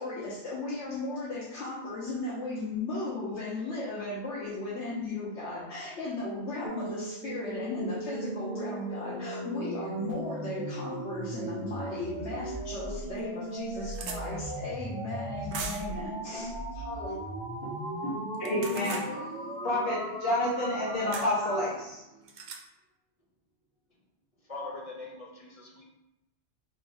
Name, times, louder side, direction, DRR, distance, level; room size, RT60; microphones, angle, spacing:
voice 1, 0.0-17.2, left 2 dB, 90° left, -8 dB, 1.2 m, -36 dB
sound 1, 6.6-21.7, right 1 dB, 5° right, 1.2 m, -37 dB
sound 2, 12.6-12.7 13.2-13.3 13.5-14.2 15.5-16.0 18.3-19.1 21.1-21.3 22.3-22.6, right 5 dB, 75° right, 0.9 m, -39 dB
voice 2, 18.4-22.0, left 1 dB, 60° left, -7 dB, 1.2 m, -30 dB
voice 3, 24.5-25.8, left 3 dB, 35° left, -2 dB, 0.7 m, -41 dB
4.7 x 3.4 x 2.6 m, 0.94 s
omnidirectional pair, 1.1 m